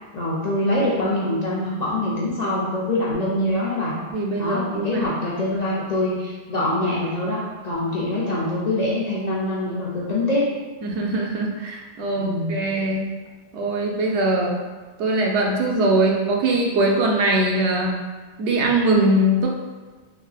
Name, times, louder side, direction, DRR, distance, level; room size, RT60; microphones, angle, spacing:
voice 1, 0.1-4.0 4.4-10.5 12.2-12.6, left 1 dB, 50° left, -7 dB, 0.5 m, -24 dB
voice 2, 4.1-5.1 10.8-13.1 13.5-14.6 15.0-18.0 18.4-19.5, right 1 dB, 80° right, -1 dB, 0.9 m, -21 dB
3.2 x 2.7 x 2.3 m, 1.4 s
omnidirectional pair, 1.2 m